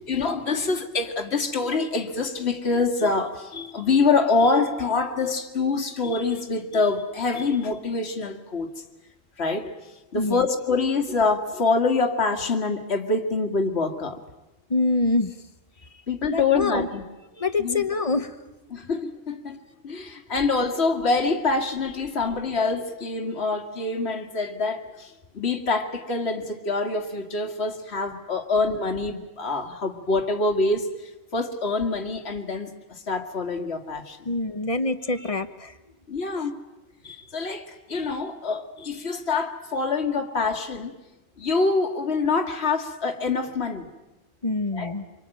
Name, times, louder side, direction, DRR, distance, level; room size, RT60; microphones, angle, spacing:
voice 1, 0.0-8.7 9.4-9.7 10.1-14.2 16.1-17.0 17.6-17.8 18.7-32.7 33.1-34.3 36.1-36.6 37.0-40.9 41.4-43.9 44.7-44.9, left 3 dB, 55° left, 5 dB, 2.2 m, -25 dB
voice 2, 10.1-10.5 14.7-15.4 15.8-15.9 16.3-16.9 17.4-18.4 34.2-35.8 36.4-36.5 44.4-45.1, left 3 dB, 30° left, 10 dB, 1.2 m, -25 dB
26.5 x 24.5 x 9.1 m, 1.0 s
omnidirectional pair, 1.4 m